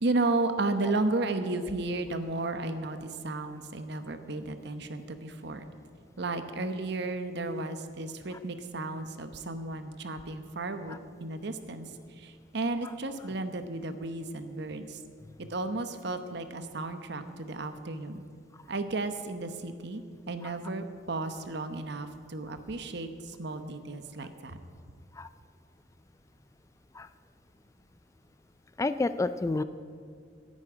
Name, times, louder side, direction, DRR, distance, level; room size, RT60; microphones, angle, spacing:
voice 1, 0.0-5.7 6.2-15.0 15.4-18.2 18.7-24.6, right 2 dB, 60° right, 9 dB, 0.9 m, -33 dB
voice 2, 28.8-29.6, left 3 dB, 15° left, 12 dB, 0.3 m, -29 dB
10.5 x 8.8 x 9.7 m, 2.2 s
head